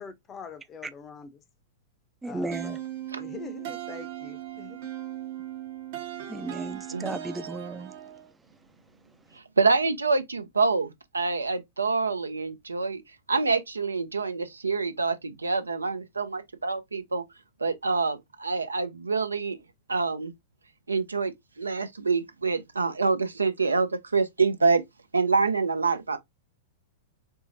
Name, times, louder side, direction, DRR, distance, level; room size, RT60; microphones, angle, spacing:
voice 1, 0.0-1.4 2.2-2.8 3.2-4.8, left 5 dB, 25° left, 0.6 m, -43 dB
voice 2, 2.2-2.8 6.3-7.9, right 2 dB, 10° right, 0.4 m, -34 dB
sound 1, 2.5-8.3, right 12 dB, 60° right, 0.8 m, -38 dB
voice 3, 9.6-13.0 13.3-17.2 17.6-19.6 19.9-20.3 20.9-24.8 25.1-26.2, right 4 dB, 90° right, 0.5 m, -26 dB
4.5 x 2.0 x 2.6 m
hypercardioid pair, 100°, 0 cm